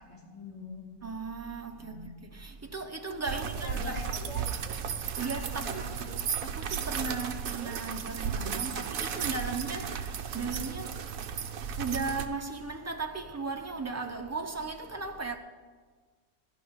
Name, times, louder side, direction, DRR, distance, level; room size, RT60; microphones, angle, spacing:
voice 1, 0.0-0.9 1.8-2.1 3.3-4.5 5.5-6.2, left 2 dB, 20° left, 2.5 m, -44 dB
voice 2, 1.0-4.0 5.2-5.8 6.4-11.0 11.6-15.4, right 4 dB, 20° right, 0.4 m, -36 dB
sound 1, 3.3-12.3, right 7 dB, 65° right, 1.2 m, -34 dB
sound 2, 5.2-7.3, left 3 dB, 45° left, 3.4 m, -56 dB
13.5 x 5.6 x 9.4 m
omnidirectional pair, 1.7 m